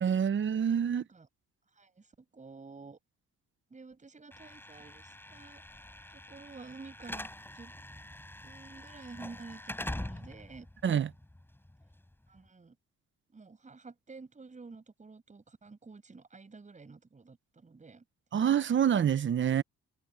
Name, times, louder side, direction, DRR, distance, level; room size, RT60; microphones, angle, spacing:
voice 1, 0.0-1.0 10.8-11.1 18.3-19.6, right 8 dB, 40° right, 0.9 m, -27 dB
voice 2, 0.8-1.3 1.7-3.0 3.7-5.6 6.1-7.3 7.5-7.7 8.4-10.7 12.3-12.8 13.3-18.0, right 4 dB, 25° right, 6.5 m, -50 dB
Slam / Alarm, 4.3-12.4, left 1 dB, 5° left, 7.7 m, -44 dB
cardioid pair, 110°, 29 cm